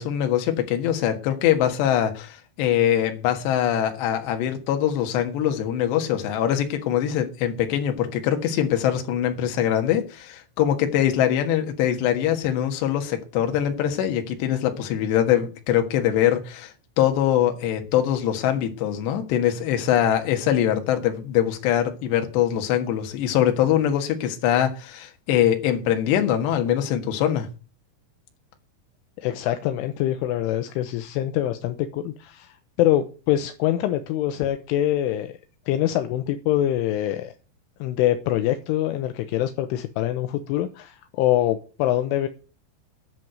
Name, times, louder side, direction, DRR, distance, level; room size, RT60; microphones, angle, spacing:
voice 1, 0.0-27.5, left 10 dB, 65° left, 3.5 m, -23 dB
voice 2, 29.2-35.3 35.7-37.3 37.8-42.3, left 13 dB, 80° left, 3.2 m, -24 dB
11.0 x 7.4 x 7.9 m
omnidirectional pair, 5.7 m